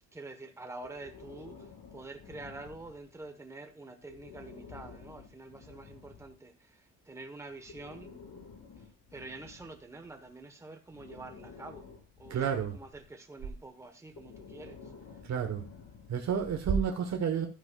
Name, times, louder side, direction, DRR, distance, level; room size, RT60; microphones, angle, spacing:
voice 1, 0.1-8.2 8.8-11.9 12.2-14.9, right 2 dB, 10° right, 1.0 m, -47 dB
Breathing, 0.8-3.2 4.0-6.4 7.5-10.3 10.9-13.1 14.1-16.4, left 5 dB, 85° left, 2.5 m, -51 dB
voice 2, 12.3-12.8 15.2-15.6 16.1-17.5, right 7 dB, 65° right, 1.0 m, -30 dB
12.5 x 9.3 x 2.2 m
wide cardioid pair, 150°, 29 cm